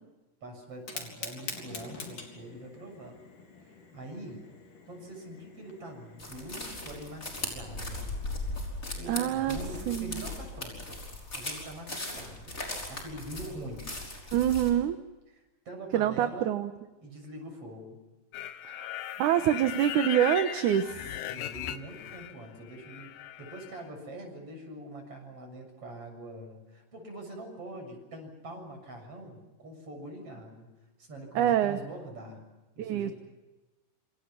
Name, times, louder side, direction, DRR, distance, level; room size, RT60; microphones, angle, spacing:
voice 1, 0.4-3.2 3.6-4.4 4.9-8.1 8.9-10.8 11.3-13.9 15.7-16.5 17.0-18.0 21.3-23.1 23.4-30.7 31.0-32.4 32.8-33.1, right 1 dB, 40° right, 3 dB, 8.0 m, -44 dB
Fire, 0.7-9.6, left 4 dB, 70° left, 5.2 m, -47 dB
sound 1, 6.2-14.7, left 2 dB, 20° left, 5.8 m, -38 dB
voice 2, 9.1-9.6 9.9-10.2 14.3-15.0 15.9-16.7 18.6-18.9 19.2-21.1 31.4-31.8 32.8-33.1, right 11 dB, 70° right, 8 dB, 2.4 m, -26 dB
sound 2, 18.3-22.4 22.7-23.8, left 12 dB, 85° left, 2.7 m, -38 dB
27.5 x 27.5 x 5.9 m, 1.1 s
omnidirectional pair, 3.9 m